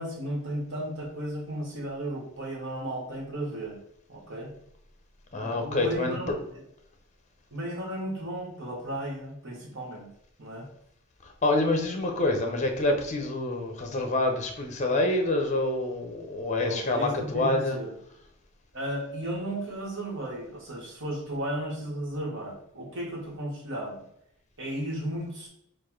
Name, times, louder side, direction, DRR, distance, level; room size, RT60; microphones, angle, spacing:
voice 1, 0.0-3.8 4.1-4.5 5.4-6.4 7.5-10.1 10.4-10.7 16.6-17.9 18.7-24.0 24.6-25.5, right 1 dB, 55° right, -2 dB, 1.4 m, -34 dB
voice 2, 5.3-6.2 11.4-17.8, left 2 dB, 30° left, 4 dB, 0.7 m, -27 dB
4.4 x 2.5 x 4.5 m, 0.74 s
head